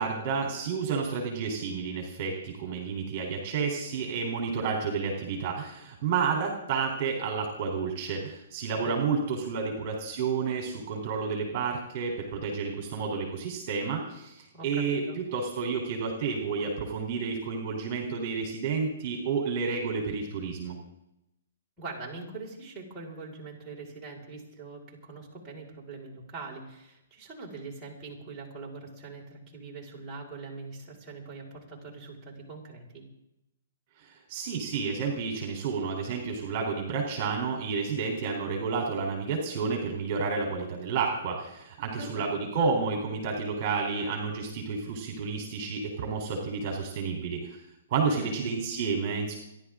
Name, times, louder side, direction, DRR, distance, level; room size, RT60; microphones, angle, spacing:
voice 1, 0.0-15.0 15.3-20.8 34.0-47.6 47.9-49.3, right 5 dB, 40° right, 1 dB, 3.8 m, -30 dB
voice 2, 8.8-9.1 14.5-15.2 21.8-33.0 42.0-42.5 48.1-48.6, right 3 dB, 10° right, -6 dB, 5.5 m, -42 dB
29.5 x 11.5 x 3.8 m, 0.84 s
hypercardioid pair, 150°, 0 cm